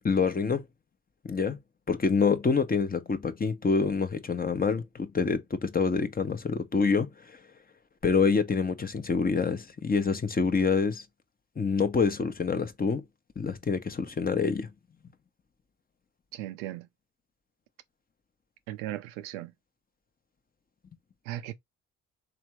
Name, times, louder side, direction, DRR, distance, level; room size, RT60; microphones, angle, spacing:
voice 1, 0.0-0.6 1.2-1.6 1.9-7.4 8.0-11.0 11.6-13.0 13.4-14.7, left 5 dB, 25° left, 0.8 m, -26 dB
voice 2, 16.3-16.9 18.7-19.5 21.3-21.5, right 14 dB, 80° right, 0.5 m, -37 dB
3.6 x 3.2 x 3.1 m
hypercardioid pair, 50°, 38 cm